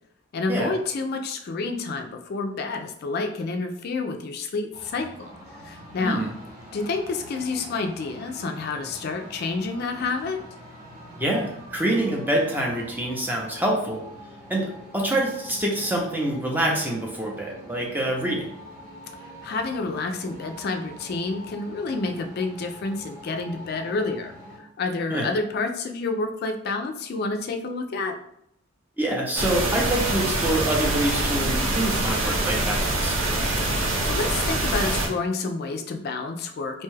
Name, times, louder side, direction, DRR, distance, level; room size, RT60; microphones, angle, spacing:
voice 1, 0.3-5.3 5.6-6.2 6.7-10.4 19.2-28.2 33.7-36.8, left 3 dB, 45° left, 5 dB, 0.3 m, -29 dB
sound 1, 4.7-24.6, equal, 40° right, 0.8 m, -45 dB
voice 2, 6.0-6.3 11.2-14.0 14.5-14.7 14.9-18.5 25.1-25.2 29.0-33.2, right 1 dB, 10° right, -2 dB, 0.5 m, -26 dB
sound 2, 29.3-35.1, right 1 dB, 75° right, 0.7 m, -25 dB
2.7 x 2.3 x 3.1 m, 0.74 s
head